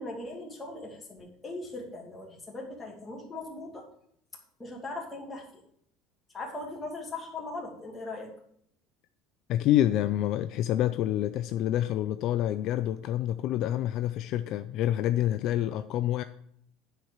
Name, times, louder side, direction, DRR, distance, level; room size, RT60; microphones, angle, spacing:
voice 1, 0.0-3.9 4.6-5.6 6.3-8.3, left 2 dB, 15° left, -1 dB, 2.4 m, -39 dB
voice 2, 9.5-16.2, left 12 dB, 55° left, 10 dB, 0.4 m, -27 dB
9.8 x 4.5 x 6.4 m, 0.68 s
cardioid pair, 135°, 0 cm